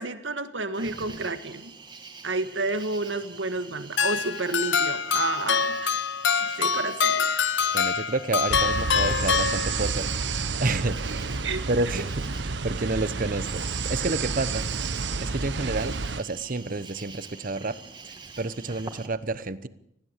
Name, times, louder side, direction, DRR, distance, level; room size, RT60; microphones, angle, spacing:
voice 1, 0.0-1.7 2.2-5.9 6.3-7.3 11.4-11.7, right 3 dB, 90° right, 10 dB, 1.7 m, -30 dB
Cricket, 0.7-19.1, right 4 dB, 25° right, 2.1 m, -46 dB
sound 1, 4.0-10.1, left 6 dB, 85° left, 0.9 m, -25 dB
voice 2, 7.7-10.1 10.6-11.2 11.7-19.7, right 2 dB, 50° right, 15 dB, 1.0 m, -30 dB
sound 2, 8.5-16.2, right 4 dB, 75° right, 0.9 m, -30 dB
20.5 x 16.0 x 8.3 m, 0.76 s
head